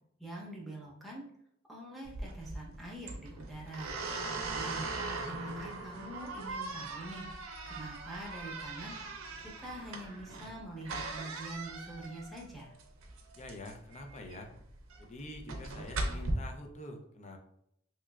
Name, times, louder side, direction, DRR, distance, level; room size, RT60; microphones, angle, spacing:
voice 1, 0.2-1.3 1.7-4.0 4.5-4.9 5.3-7.3 7.6-9.0 9.4-12.7, right 1 dB, ahead, -4 dB, 0.8 m, -45 dB
sound 1, 2.0-16.3, right 3 dB, 85° right, 0.6 m, -40 dB
voice 2, 13.4-14.5 15.0-17.4, left 1 dB, 35° left, 4 dB, 0.4 m, -46 dB
3.2 x 3.0 x 2.3 m, 0.74 s
head